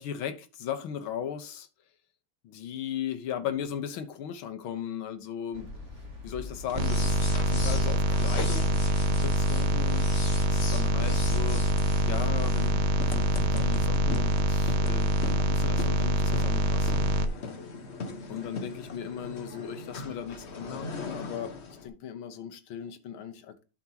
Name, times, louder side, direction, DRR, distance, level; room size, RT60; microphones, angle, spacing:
voice 1, 0.0-1.7 2.4-5.7 6.2-10.1 10.5-11.6 12.1-17.1 18.3-21.5 21.8-23.6, left 9 dB, 85° left, 1.9 m, -37 dB
sound 1, 5.5-14.5, left 3 dB, 35° right, 2.3 m, -40 dB
sound 2, 6.6-21.9, left 4 dB, 40° left, 1.2 m, -40 dB
sound 3, 6.8-17.3, right 2 dB, 85° right, 1.6 m, -25 dB
11.5 x 6.0 x 2.9 m
omnidirectional pair, 2.2 m